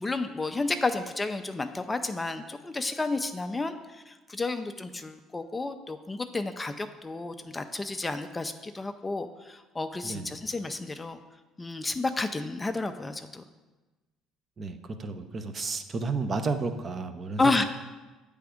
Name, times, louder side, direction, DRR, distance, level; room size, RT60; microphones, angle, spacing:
voice 1, 0.0-11.2 11.6-13.4 17.4-17.6, left 3 dB, 20° left, 8 dB, 0.4 m, -31 dB
voice 2, 14.6-17.5, right 4 dB, 35° right, 7 dB, 0.6 m, -32 dB
8.1 x 3.5 x 5.0 m, 1.2 s
supercardioid pair, 80°, 0 cm